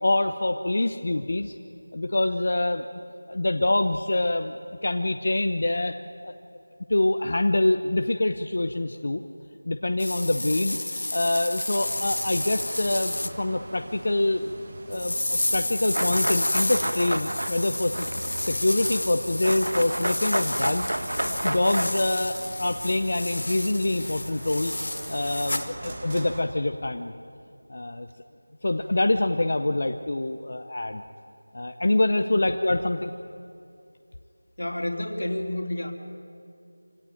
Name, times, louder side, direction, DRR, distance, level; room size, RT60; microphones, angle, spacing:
voice 1, 0.0-1.6 1.9-2.8 3.3-4.5 4.8-6.0 6.2-6.3 6.9-9.2 9.6-14.5 14.9-18.1 18.4-20.9 21.3-24.7 25.1-27.1 27.7-28.1 28.6-31.0 31.5-33.1, left 2 dB, 40° left, 7 dB, 0.7 m, -25 dB
sound 1, 10.0-13.3 14.9-25.7, left 1 dB, 55° left, 1.3 m, -31 dB
sound 2, 11.7-26.4, right 1 dB, 20° right, 1.5 m, -41 dB
sound 3, 15.9-19.1 19.4-22.0, right 1 dB, 85° right, 1.4 m, -31 dB
voice 2, 34.6-35.9, left 1 dB, 80° left, 2 dB, 3.3 m, -30 dB
25.5 x 17.5 x 9.2 m, 2.6 s
figure-of-eight pair, 180°, 0 cm